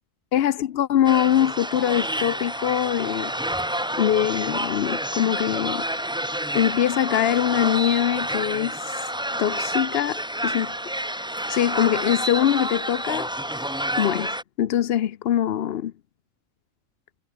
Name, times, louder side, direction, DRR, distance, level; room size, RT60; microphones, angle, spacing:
voice 1, 0.3-3.3 3.9-5.8 6.5-8.8 9.4-10.7 11.5-13.3 14.0-15.9, left 11 dB, 60° left, 0.8 m, -23 dB
sound 1, 1.0-14.4, right 1 dB, 5° right, 1.0 m, -29 dB
omnidirectional pair, 1.3 m